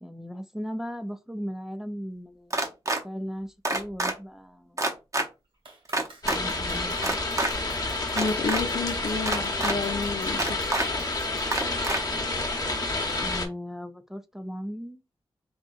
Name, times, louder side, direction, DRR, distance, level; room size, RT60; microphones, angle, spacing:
voice 1, 0.0-2.7 3.0-4.9 6.2-7.2 13.2-15.0, equal, 5° right, 0.5 m, -37 dB
sound 1, 2.5-3.0 3.6-4.1 4.8-5.3 5.9-6.4 7.0-7.5 8.1-8.6 9.3-9.7 10.4-10.9 11.5-12.0, right 2 dB, 35° right, 0.8 m, -26 dB
Clapping, 5.6-11.8, right 2 dB, 60° right, 1.5 m, -50 dB
sound 2, 6.2-13.5, left 2 dB, 35° left, 1.0 m, -29 dB
voice 2, 8.1-10.6, left 4 dB, 75° left, 0.8 m, -30 dB
3.8 x 3.6 x 2.5 m
wide cardioid pair, 80°, 10 cm